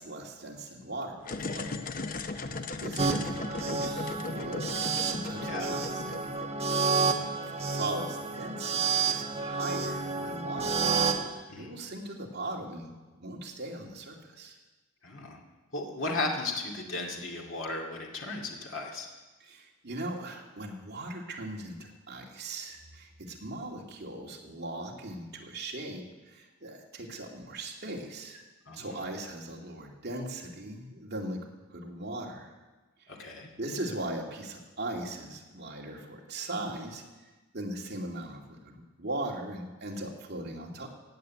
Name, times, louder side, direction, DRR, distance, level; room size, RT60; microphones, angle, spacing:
voice 1, 0.0-1.8 2.5-6.2 6.9-11.1 11.6-12.9 13.2-14.6 19.4-28.4 28.7-31.4 31.7-32.5 33.6-37.0 37.5-40.9, right 2 dB, 50° right, -1 dB, 2.5 m, -39 dB
sound 1, 1.2-7.0, left 3 dB, 40° left, 0.7 m, -38 dB
sound 2, 3.0-11.3, right 4 dB, 30° right, 1.3 m, -30 dB
voice 2, 15.0-15.4 15.7-19.1 28.7-29.0 33.1-33.5, left 2 dB, 65° left, 0 dB, 2.3 m, -35 dB
16.0 x 8.0 x 9.4 m, 1.2 s
head